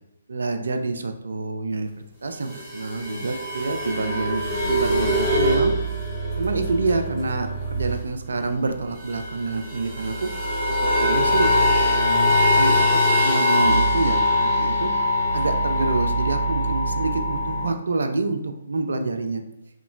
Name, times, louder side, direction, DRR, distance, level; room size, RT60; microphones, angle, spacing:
voice 1, 0.3-1.9 2.2-5.7 6.4-10.3 11.0-11.5 11.8-14.9 15.3-19.4, right 3 dB, 65° right, 6 dB, 0.3 m, -27 dB
sound 1, 2.4-8.2 8.4-8.5 8.7-17.7, left 1 dB, 10° right, 1.1 m, -22 dB
2.9 x 2.9 x 2.5 m, 0.78 s
figure-of-eight pair, 135°, 0 cm